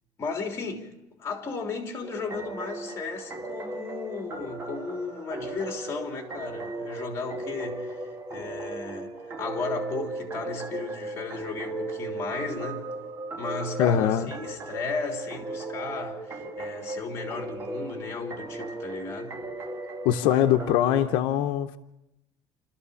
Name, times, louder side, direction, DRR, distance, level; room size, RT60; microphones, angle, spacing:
voice 1, 0.2-0.9 1.2-12.9 13.3-19.4, left 4 dB, 30° left, 3.3 m, -35 dB
sound 1, 2.0-21.1, right 2 dB, 35° right, 1.6 m, -37 dB
voice 2, 13.8-14.3 20.0-21.8, left 11 dB, 90° left, 0.8 m, -22 dB
28.5 x 13.0 x 7.0 m
cardioid pair, 160°, 8 cm